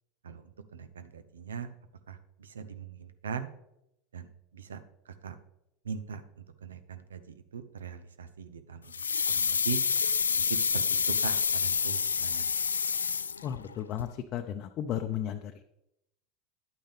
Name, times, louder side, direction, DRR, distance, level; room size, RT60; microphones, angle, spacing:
voice 1, 0.2-1.7 2.1-3.5 4.1-5.4 5.8-9.8 10.4-12.5, right 7 dB, 80° right, 11 dB, 0.7 m, -41 dB
sound 1, 8.9-13.7 14.0-14.1, left 6 dB, 85° left, 0.3 m, -28 dB
voice 2, 13.4-15.6, left 10 dB, 45° left, 5 dB, 0.6 m, -34 dB
10.5 x 8.7 x 3.5 m, 0.82 s
figure-of-eight pair, 80°, 0 cm